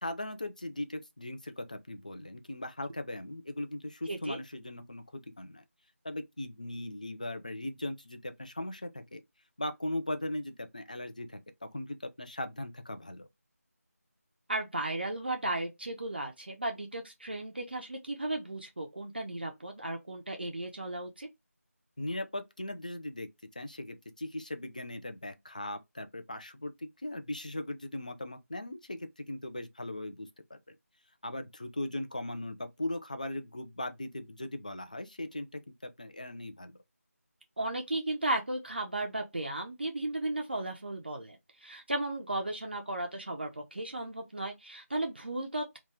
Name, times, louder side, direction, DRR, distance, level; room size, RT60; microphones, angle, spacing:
voice 1, 0.0-5.6 6.0-9.2 9.6-13.3 22.0-30.7 31.2-36.8, left 1 dB, 30° left, 0.4 m, -39 dB
voice 2, 4.1-4.4 14.5-21.3 37.6-45.8, right 2 dB, 40° right, 0.6 m, -35 dB
2.9 x 2.2 x 3.5 m
figure-of-eight pair, 165°, 8 cm